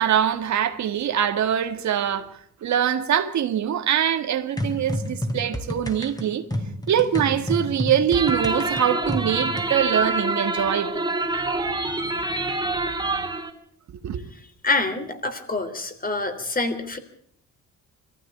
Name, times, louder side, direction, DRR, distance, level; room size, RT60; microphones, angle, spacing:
voice 1, 0.0-2.3 2.6-6.5 6.9-11.1 14.0-14.2, right 9 dB, 65° right, 1.9 m, -23 dB
sound 1, 4.6-9.7, left 1 dB, 10° left, 3.2 m, -30 dB
sound 2, 8.1-13.5, right 2 dB, 15° right, 3.1 m, -26 dB
voice 2, 14.6-17.0, left 3 dB, 30° left, 3.5 m, -26 dB
22.0 x 15.0 x 8.4 m
cardioid pair, 90°, 30 cm